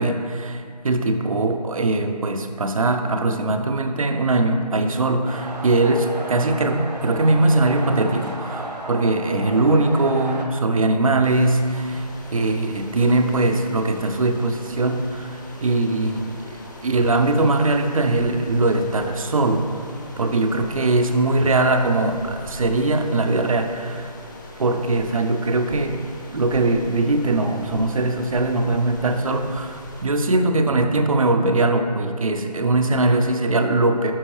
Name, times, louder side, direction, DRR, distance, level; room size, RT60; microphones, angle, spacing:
voice 1, 0.0-16.6 16.8-19.7 20.2-24.1 24.6-26.0 26.3-34.1, right 2 dB, 55° right, 6 dB, 0.7 m, -21 dB
sound 1, 5.2-10.5, right 2 dB, 85° right, 1.2 m, -34 dB
sound 2, 11.2-30.0, left 1 dB, 30° left, 0.7 m, -41 dB
10.0 x 5.5 x 3.2 m, 2.2 s
figure-of-eight pair, 160°, 21 cm